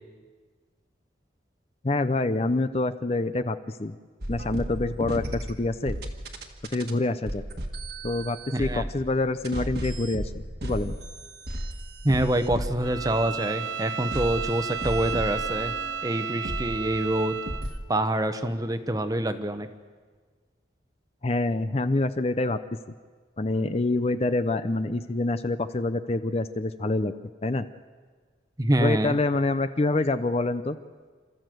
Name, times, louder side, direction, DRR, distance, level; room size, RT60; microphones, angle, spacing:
voice 1, 1.8-4.0 4.3-6.0 6.7-7.4 8.0-10.3 10.6-11.0 21.2-22.6 23.4-27.1 27.4-27.7 28.8-30.8, left 2 dB, 30° left, 11 dB, 0.5 m, -26 dB
sound 1, 4.2-6.9 7.3-16.2 16.4-17.2 17.5-17.8, right 1 dB, 55° right, 1.6 m, -35 dB
voice 2, 8.5-8.9 12.0-15.7 16.0-17.4 17.9-19.7 28.6-29.2, right 1 dB, 20° right, 9 dB, 0.9 m, -26 dB
Bowed string instrument, 12.8-17.7, right 7 dB, 80° right, 0.9 m, -33 dB
28.0 x 13.5 x 7.7 m, 1.5 s
head